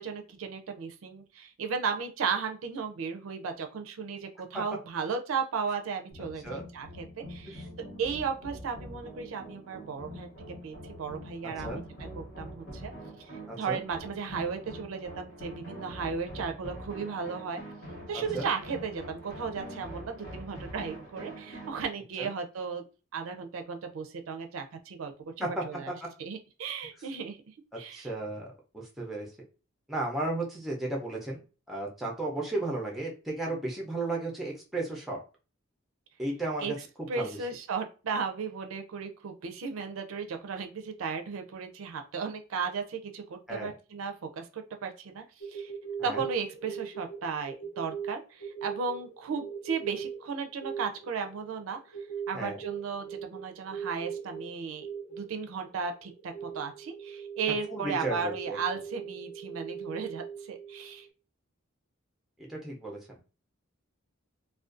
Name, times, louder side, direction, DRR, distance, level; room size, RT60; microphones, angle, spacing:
voice 1, 0.0-7.7 8.0-10.3 10.6-12.9 13.6-17.6 18.1-22.8 23.1-25.1 25.4-25.9 26.2-27.4 27.8-28.1 36.6-36.7 37.1-45.7 46.0-51.8 52.3-54.9 55.2-61.1, right 5 dB, 80° right, 5 dB, 0.4 m, -35 dB
sound 1, 6.1-21.8, equal, 65° left, 1.1 m, -44 dB
voice 2, 13.5-13.8 18.1-18.5 22.2-22.3 25.4-25.9 27.9-28.5 28.7-29.3 29.9-31.4 31.7-35.2 36.2-36.8 37.2-37.4 43.5-43.7 46.0-46.2 52.3-52.6 57.7-58.6 62.5-63.2, right 2 dB, ahead, -2 dB, 0.5 m, -34 dB
sound 2, 45.4-61.1, right 7 dB, 50° left, 0.6 m, -41 dB
2.4 x 2.2 x 2.4 m, 0.34 s
head